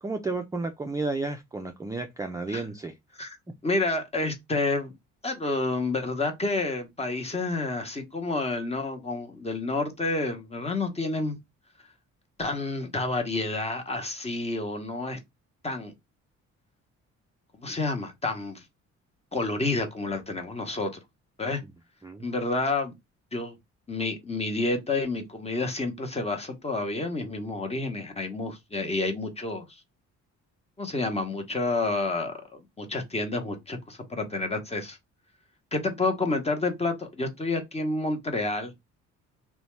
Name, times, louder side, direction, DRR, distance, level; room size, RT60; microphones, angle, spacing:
voice 1, 0.0-3.0 22.0-22.3, right 3 dB, 10° right, 0.3 m, -32 dB
voice 2, 3.6-4.9 5.2-11.4 12.4-15.2 15.6-15.9 17.5-18.6 19.3-21.0 21.4-21.6 22.2-22.9 23.3-23.6 23.9-29.8 30.8-35.0 35.7-38.8, left 2 dB, 20° left, 0.8 m, -29 dB
2.7 x 2.2 x 3.1 m
cardioid pair, 90°, 30 cm